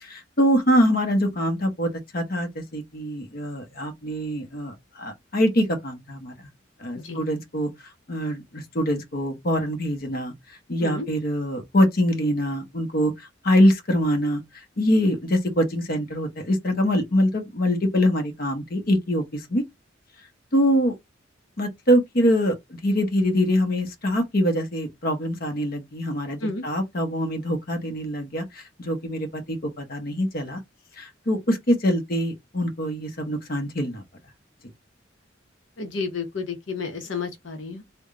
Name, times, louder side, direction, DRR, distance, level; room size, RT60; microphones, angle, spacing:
voice 1, 0.0-6.3 6.8-7.7 8.1-19.6 20.5-21.0 21.6-30.6 31.0-34.0, equal, 50° left, 0.9 m, -24 dB
voice 2, 35.8-37.8, left 4 dB, 80° left, 0.8 m, -31 dB
3.4 x 2.2 x 3.7 m
head